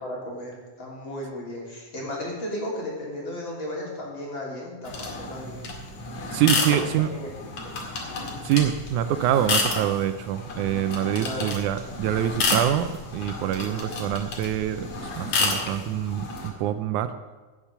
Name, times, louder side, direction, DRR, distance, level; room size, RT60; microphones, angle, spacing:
voice 1, 0.0-5.6 6.6-7.3 7.6-7.7 8.2-8.4 11.1-11.5, left 1 dB, 40° left, -3 dB, 3.8 m, -35 dB
sound 1, 4.9-16.5, left 3 dB, 60° left, 3.2 m, -30 dB
voice 2, 6.3-7.1 8.4-17.2, right 11 dB, 80° right, 10 dB, 2.0 m, -25 dB
16.0 x 7.3 x 6.7 m, 1.3 s
omnidirectional pair, 3.6 m